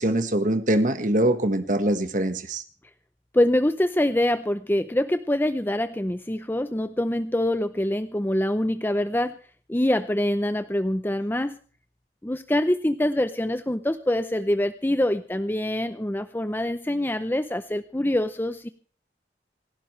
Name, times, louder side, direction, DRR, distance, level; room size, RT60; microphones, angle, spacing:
voice 1, 0.0-2.6, right 1 dB, 45° right, 9 dB, 1.5 m, -23 dB
voice 2, 3.3-9.3 9.7-11.6 12.2-18.7, left 1 dB, 10° left, 10 dB, 0.6 m, -25 dB
27.0 x 12.0 x 3.3 m, 0.40 s
head